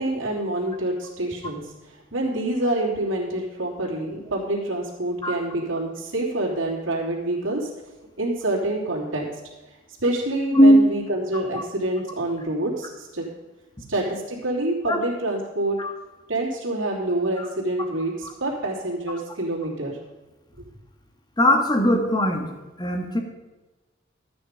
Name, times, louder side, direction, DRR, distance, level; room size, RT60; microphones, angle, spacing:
voice 1, 0.0-7.7 8.2-9.3 10.0-13.3 13.9-15.8 16.3-20.0, right 1 dB, 85° right, -4 dB, 3.2 m, -27 dB
voice 2, 21.4-22.4 22.8-23.2, equal, 20° left, 4 dB, 1.6 m, -18 dB
13.0 x 8.7 x 5.2 m, 1.2 s
head